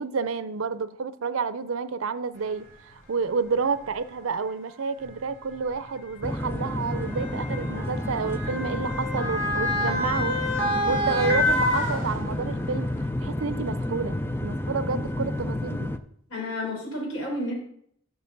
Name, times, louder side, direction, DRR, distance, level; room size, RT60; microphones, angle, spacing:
voice 1, 0.0-2.7 3.1-10.4 10.9-12.9 13.2-15.9, right 5 dB, 85° right, 13 dB, 0.6 m, -29 dB
Motor vehicle (road) / Siren, 2.7-2.8 3.7-3.9 5.0-12.6 13.0-13.1, left 1 dB, 65° left, 3.1 m, -28 dB
sound 1, 6.2-16.0, left 1 dB, 10° left, 0.4 m, -30 dB
voice 2, 16.3-17.5, left 1 dB, 90° left, -2 dB, 4.8 m, -31 dB
6.9 x 6.8 x 6.7 m, 0.68 s
head